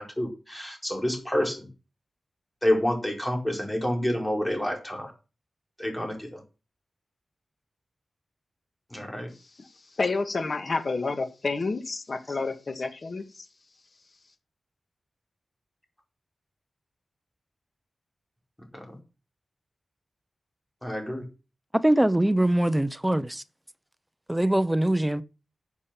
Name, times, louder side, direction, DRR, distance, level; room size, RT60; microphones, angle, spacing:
voice 1, 0.0-1.7 2.6-5.1 5.8-6.4 8.9-9.3 18.7-19.0 20.8-21.2, left 1 dB, 10° left, 4.5 m, -28 dB
voice 2, 10.0-13.2, left 3 dB, 45° left, 2.0 m, -29 dB
voice 3, 21.8-23.4 24.3-25.2, right 1 dB, 10° right, 0.8 m, -23 dB
12.5 x 7.0 x 5.9 m
wide cardioid pair, 115°, 0 cm